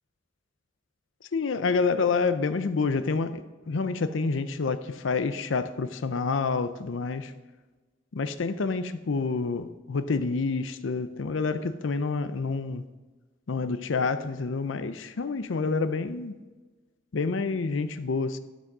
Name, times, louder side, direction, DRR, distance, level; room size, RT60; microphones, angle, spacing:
voice 1, 1.3-7.3 8.1-12.8 13.5-16.3 17.1-18.4, left 4 dB, 75° left, 0.5 m, -28 dB
12.5 x 6.0 x 6.5 m
head